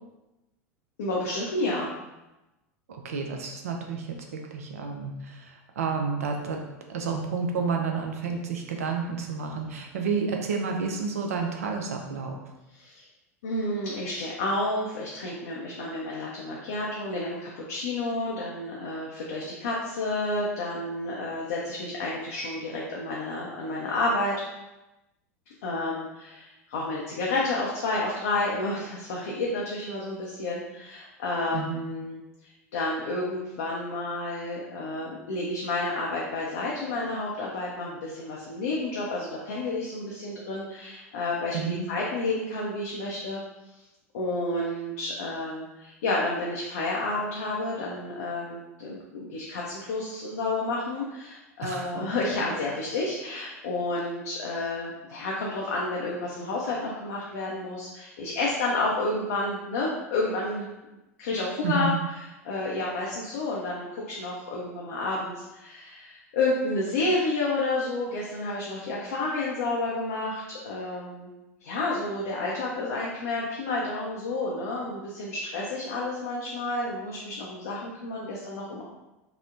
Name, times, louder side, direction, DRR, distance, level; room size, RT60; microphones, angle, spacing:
voice 1, 1.0-1.9 12.8-13.0 13.4-24.4 25.6-43.4 44.1-60.7 61.2-61.9 62.4-71.3 71.6-78.8, left 2 dB, 60° left, -4 dB, 0.4 m, -30 dB
voice 2, 2.9-4.2 4.5-12.3 31.5-31.9 41.5-41.9 51.6-52.1 61.6-61.9, right 5 dB, 65° right, 2 dB, 0.4 m, -30 dB
2.9 x 2.0 x 2.5 m, 0.99 s
figure-of-eight pair, 80°, 8 cm